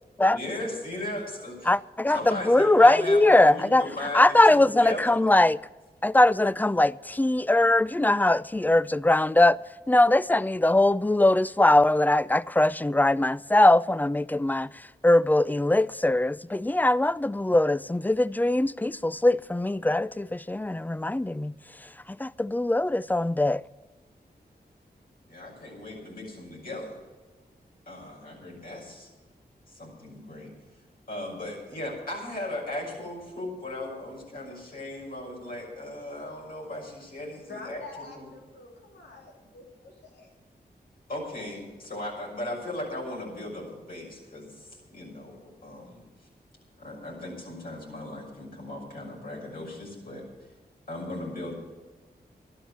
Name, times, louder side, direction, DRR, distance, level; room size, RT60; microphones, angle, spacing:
voice 1, 0.2-1.7 2.1-5.2 25.3-27.0 27.9-29.1 29.7-30.5 31.1-37.8 38.1-38.3 41.1-46.0 46.8-50.3 50.9-51.5, left 1 dB, 60° left, 6.2 m, -37 dB
voice 2, 1.7-3.8 4.1-5.6 6.0-9.6 9.9-14.7 15.0-21.5 22.2-23.6, left 1 dB, 10° left, 0.4 m, -21 dB
voice 3, 37.5-40.3, left 3 dB, 85° left, 3.3 m, -46 dB
12.0 x 11.5 x 7.5 m
cardioid pair, 55°, 17 cm